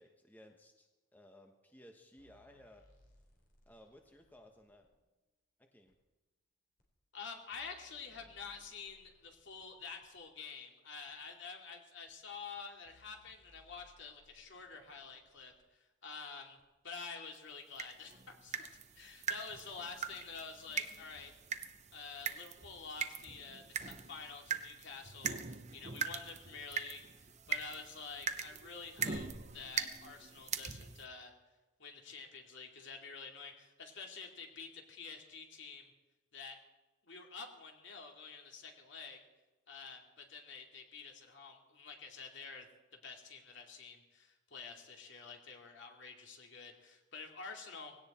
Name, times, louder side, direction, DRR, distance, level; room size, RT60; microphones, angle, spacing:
voice 1, 0.0-2.9 3.7-4.9 5.6-5.9, left 1 dB, 10° left, 3 dB, 1.1 m, -59 dB
sound 1, 2.2-4.9 5.9-6.0 6.8-6.9 7.3-10.2 11.1-11.2 12.1-12.2 12.6-12.7 12.8-15.6 16.6-16.7, left 1 dB, 45° left, 4.0 m, -68 dB
voice 2, 7.1-16.6 16.8-18.7 19.0-21.3 21.9-31.3 31.8-35.9 36.3-36.6 37.0-39.2 39.7-42.7 43.0-47.9, left 5 dB, 60° left, 2 dB, 2.6 m, -49 dB
sound 2, 17.7-31.0, right 6 dB, 35° right, 0.9 m, -42 dB
19.0 x 17.0 x 4.3 m, 1.1 s
head